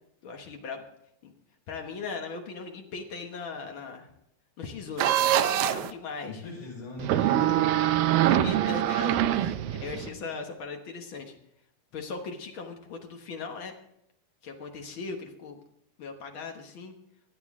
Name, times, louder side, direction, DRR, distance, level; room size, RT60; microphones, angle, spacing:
voice 1, 0.2-0.8 1.2-1.3 1.7-4.1 4.6-6.4 8.1-11.3 11.9-13.7 14.4-15.6 16.0-17.0, left 4 dB, 85° left, 3 dB, 1.1 m, -38 dB
sound 1, 5.0-5.9 7.0-10.1, right 12 dB, 80° right, 2.4 m, -24 dB
voice 2, 6.3-8.1 9.7-9.8 10.0-10.2, left 3 dB, 65° left, -2 dB, 6.8 m, -41 dB
25.5 x 9.2 x 3.7 m, 0.76 s
omnidirectional pair, 4.3 m